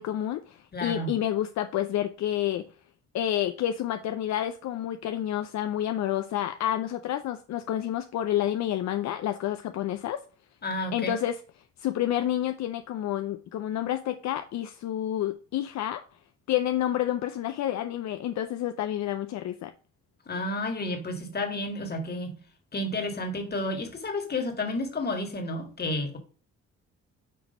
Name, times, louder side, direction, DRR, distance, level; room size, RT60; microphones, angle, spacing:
voice 1, 0.0-2.7 3.1-10.2 10.9-11.4 11.8-16.0 16.5-19.7, left 12 dB, 65° left, 0.5 m, -29 dB
voice 2, 0.7-1.2 10.6-11.2 20.3-22.4 22.7-26.2, left 2 dB, 35° left, 1.8 m, -31 dB
6.2 x 3.0 x 5.2 m
cardioid pair, 90°, 30 cm